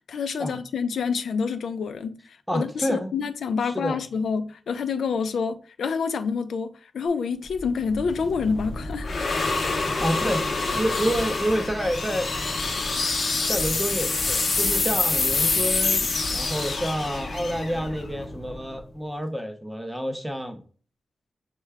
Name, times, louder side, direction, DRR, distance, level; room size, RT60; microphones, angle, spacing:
voice 1, 0.1-9.1 9.6-9.8, left 5 dB, 85° left, 0.4 m, -28 dB
voice 2, 2.5-3.1 3.6-4.0 10.0-10.5 10.7-12.3 13.5-20.6, equal, 5° right, 0.5 m, -28 dB
sound 1, 7.5-18.8, left 3 dB, 50° left, 0.7 m, -26 dB
5.6 x 2.2 x 3.3 m
wide cardioid pair, 160°, 0 cm